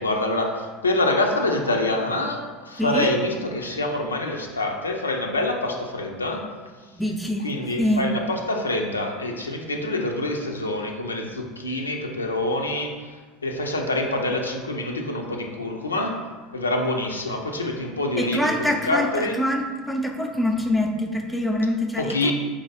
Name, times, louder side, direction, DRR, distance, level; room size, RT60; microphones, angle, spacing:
voice 1, 0.0-6.4 7.4-13.0 13.4-16.2 16.5-19.4 22.0-22.3, left 1 dB, 80° left, 2 dB, 0.4 m, -26 dB
voice 2, 6.9-7.5 7.8-8.1 18.2-19.1 19.4-22.3, left 1 dB, 5° left, 2 dB, 0.5 m, -24 dB
4.0 x 3.0 x 3.9 m, 1.4 s
figure-of-eight pair, 75°, 0 cm